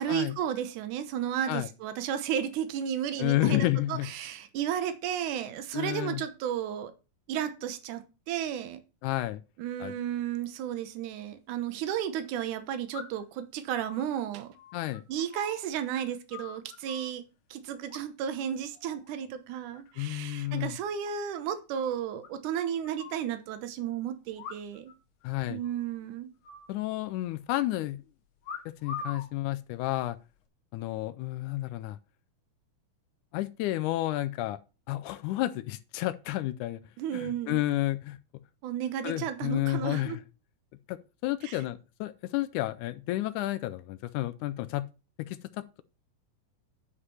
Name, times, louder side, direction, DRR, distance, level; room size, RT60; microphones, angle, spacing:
voice 1, 0.0-6.9 7.3-8.8 9.6-14.5 15.1-17.2 17.5-24.9 25.5-26.3 37.0-37.6 38.6-40.2 41.4-41.6, right 9 dB, 70° right, 2.4 m, -33 dB
voice 2, 3.2-4.1 5.7-6.2 9.0-9.4 9.8-9.9 14.7-15.0 20.0-20.8 25.2-25.6 26.7-28.0 28.7-30.2 30.7-32.0 33.3-34.6 34.9-36.8 37.1-38.2 39.0-40.2 40.9-44.9 45.2-45.8, left 16 dB, 80° left, 1.9 m, -31 dB
sound 1, 11.1-11.2 12.9-13.4 13.8-17.1 17.9-18.4 18.7-19.1 19.5-20.1 20.3-20.4 20.7-20.8 21.0-21.1 21.4-21.5 22.2-23.3 24.3-25.0 25.2-25.3 25.6-26.0 26.4-27.4 28.4-29.3 30.0-30.4, left 5 dB, 60° left, 2.0 m, -44 dB
9.8 x 5.0 x 5.6 m
omnidirectional pair, 3.8 m